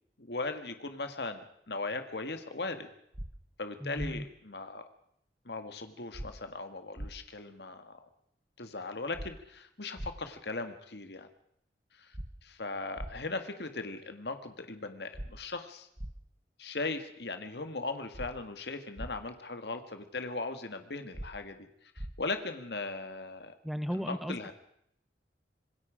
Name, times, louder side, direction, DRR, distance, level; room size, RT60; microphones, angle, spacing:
voice 1, 0.2-2.9 3.6-4.9 5.5-8.1 8.6-11.3 11.9-15.9 16.6-23.5 23.9-24.5, left 3 dB, 70° left, 8 dB, 1.7 m, -38 dB
sound 1, 3.1-3.3 4.0-4.1 6.1-6.3 7.0-7.1 9.1-9.3 10.0-10.1 12.1-12.3 13.0-13.1 15.1-15.3 16.0-16.1 18.1-18.3 19.0-19.1 21.1-21.3 22.0-22.1, right 1 dB, 35° right, 1.3 m, -39 dB
voice 2, 3.8-4.2 23.6-24.5, equal, ahead, 11 dB, 0.8 m, -35 dB
26.0 x 21.5 x 5.0 m, 0.74 s
head